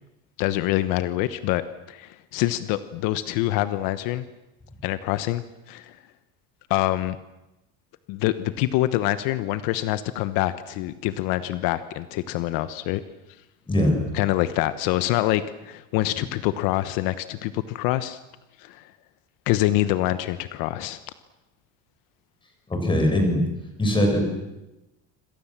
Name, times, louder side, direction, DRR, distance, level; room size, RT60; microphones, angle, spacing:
voice 1, 0.4-4.2 4.8-6.0 6.7-7.2 8.1-13.0 14.1-18.2 18.6-18.9 19.5-21.0, left 15 dB, 75° left, 12 dB, 1.2 m, -25 dB
voice 2, 13.7-14.0 22.7-23.4 23.8-24.2, left 1 dB, 15° left, 3 dB, 6.9 m, -21 dB
27.5 x 26.0 x 7.5 m, 0.98 s
cardioid pair, 170°, 34 cm